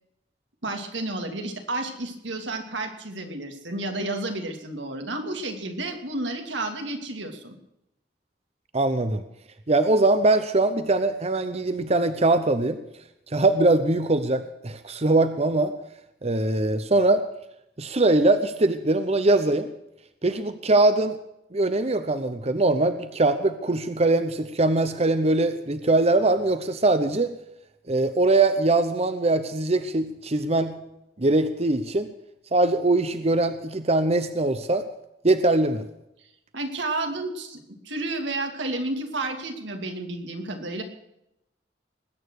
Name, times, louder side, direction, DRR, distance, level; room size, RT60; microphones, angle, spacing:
voice 1, 0.6-7.6 36.5-40.8, right 2 dB, 90° right, 4 dB, 2.8 m, -31 dB
voice 2, 8.7-9.2 9.7-12.8 13.3-15.7 16.2-17.2 17.8-19.7 20.2-21.1 21.5-27.3 27.9-30.8 31.2-32.1 32.5-34.8 35.2-35.8, right 2 dB, 35° right, 10 dB, 0.9 m, -22 dB
20.5 x 9.1 x 6.4 m, 0.84 s
head